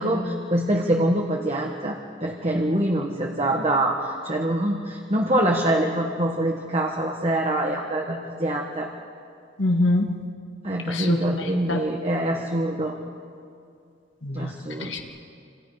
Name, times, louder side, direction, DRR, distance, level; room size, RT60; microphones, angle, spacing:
voice 1, 0.0-8.9 10.6-13.0 14.3-15.0, right 1 dB, 30° right, 0 dB, 1.6 m, -25 dB
voice 2, 9.6-10.3 10.9-11.2 11.7-11.8 14.2-14.5 14.8-15.0, left 2 dB, 85° left, 2 dB, 1.9 m, -23 dB
28.0 x 27.5 x 5.0 m, 2.3 s
head